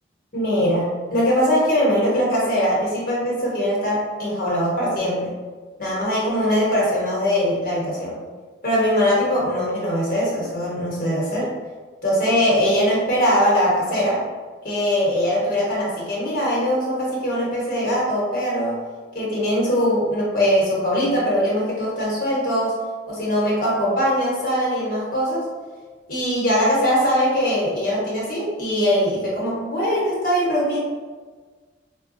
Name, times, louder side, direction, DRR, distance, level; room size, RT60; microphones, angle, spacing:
voice 1, 0.3-5.3 5.8-8.2 8.6-11.5 12.0-14.2 14.6-18.8 19.1-22.7 23.1-25.5 26.1-30.8, equal, 50° left, -5 dB, 1.0 m, -21 dB
4.7 x 2.3 x 2.5 m, 1.4 s
head